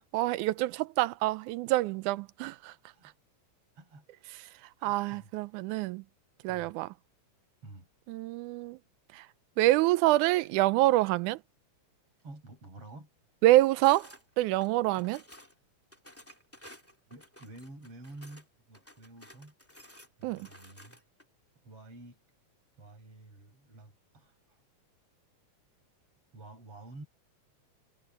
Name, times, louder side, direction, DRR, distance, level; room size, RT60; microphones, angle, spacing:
voice 1, 0.0-2.7 4.8-6.0 6.4-6.9 8.1-8.8 9.1-9.2 9.6-11.4 13.4-14.1 14.4-15.2 20.2-20.5, right 17 dB, 85° right, 2.1 m, -26 dB
voice 2, 3.7-4.3 4.8-5.3 6.5-6.8 7.6-7.9 12.2-13.1 17.1-19.6 20.2-21.0 21.6-22.2 22.8-24.6 26.3-27.1, right 2 dB, 45° right, 7.2 m, -50 dB
sound 1, 13.8-14.2 14.6-15.5 15.9-18.5 18.7-21.2, equal, 5° left, 2.0 m, -54 dB
omnidirectional pair, 3.5 m